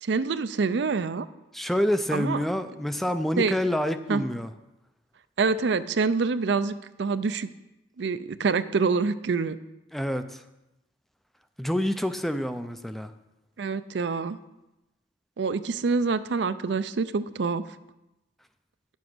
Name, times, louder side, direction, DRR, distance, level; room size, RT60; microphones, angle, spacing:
voice 1, 0.0-1.3 2.1-2.4 3.4-3.6 4.1-4.2 5.4-7.5 8.0-9.6 13.6-14.4 15.4-17.6, right 4 dB, 65° right, 13 dB, 0.5 m, -26 dB
voice 2, 1.5-4.5 9.9-10.4 11.6-13.1, equal, ahead, 9 dB, 0.4 m, -27 dB
9.8 x 7.2 x 6.1 m, 0.96 s
head